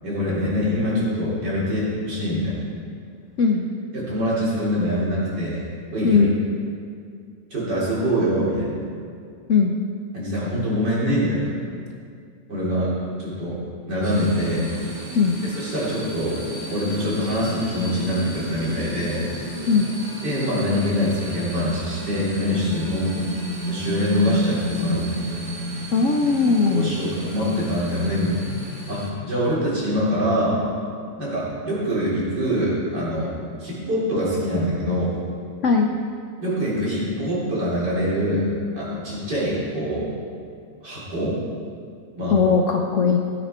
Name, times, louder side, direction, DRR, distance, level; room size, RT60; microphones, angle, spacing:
voice 1, 0.0-2.6 3.9-5.6 5.9-6.3 7.5-8.8 10.1-11.5 12.5-12.9 13.2-13.6 13.9-14.7 15.4-16.4 16.7-19.3 20.2-23.3 23.7-25.2 26.7-28.4 28.9-30.6 31.2-35.1 36.4-40.2 40.8-41.4 42.2-42.4, equal, 60° right, -8 dB, 4.2 m, -24 dB
sound 1, 14.0-29.1, equal, 40° right, 3.2 m, -32 dB
voice 2, 25.9-27.0 35.6-35.9 42.3-43.2, left 5 dB, 65° left, 3 dB, 0.8 m, -19 dB
16.5 x 8.8 x 4.4 m, 2.3 s
omnidirectional pair, 2.1 m